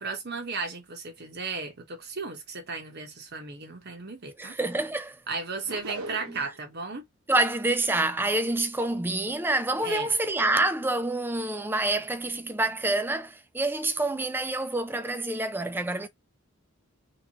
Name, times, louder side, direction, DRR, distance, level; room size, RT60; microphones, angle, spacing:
voice 1, 0.0-4.5 5.3-7.0 9.8-10.1, right 4 dB, 50° right, 1.1 m, -35 dB
voice 2, 4.4-5.2 6.3-6.4 7.3-16.1, right 2 dB, 10° right, 0.4 m, -27 dB
sound 1, 5.7-6.6, right 2 dB, 85° right, 1.1 m, -38 dB
3.6 x 3.0 x 2.8 m
head